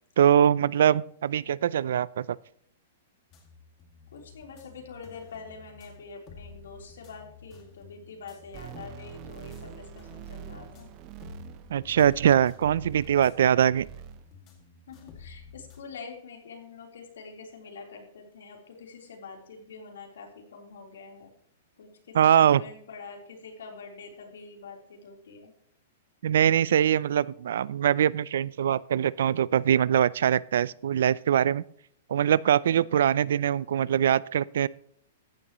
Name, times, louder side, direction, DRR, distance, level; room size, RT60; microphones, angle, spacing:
voice 1, 0.2-2.4 11.7-13.9 22.1-22.6 26.2-31.6 32.1-34.7, right 9 dB, 70° right, 22 dB, 0.4 m, -22 dB
sound 1, 3.3-15.8, left 5 dB, 25° left, 2.1 m, -51 dB
voice 2, 4.1-10.9 14.9-21.3 21.8-25.5, left 4 dB, 90° left, 1 dB, 3.6 m, -45 dB
sound 2, 8.5-13.4 13.7-14.3 14.6-14.7, right 9 dB, 30° right, 0.7 m, -45 dB
15.0 x 10.5 x 3.1 m, 0.64 s
hypercardioid pair, 165°, 0 cm